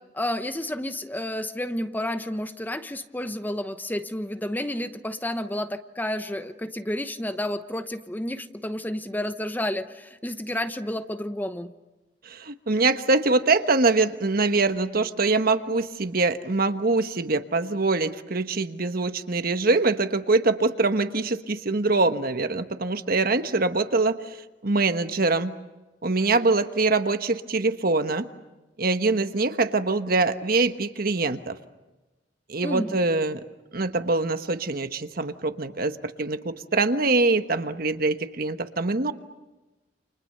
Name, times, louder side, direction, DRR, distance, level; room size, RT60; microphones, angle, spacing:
voice 1, 0.1-11.7 32.6-33.0, left 1 dB, 10° left, 10 dB, 0.9 m, -30 dB
voice 2, 12.2-24.4 24.6-25.5 26.0-28.3 28.8-31.5 32.5-33.4 33.7-39.1, right 3 dB, 55° right, 9 dB, 1.3 m, -24 dB
29.5 x 28.0 x 6.7 m, 1.1 s
head